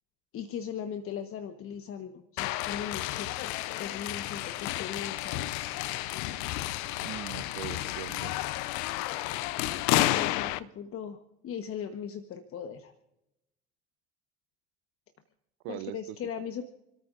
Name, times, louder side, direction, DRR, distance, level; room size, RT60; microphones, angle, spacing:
voice 1, 0.3-3.5 3.8-5.6 9.9-11.2 11.4-12.9 15.7-16.6, left 8 dB, 40° left, 8 dB, 1.3 m, -39 dB
sound 1, 2.4-10.6, left 16 dB, 60° left, 0.8 m, -31 dB
voice 2, 7.0-8.4 15.6-16.6, right 17 dB, 55° right, 17 dB, 0.8 m, -42 dB
29.0 x 13.5 x 2.6 m, 0.87 s
figure-of-eight pair, 65°, 33 cm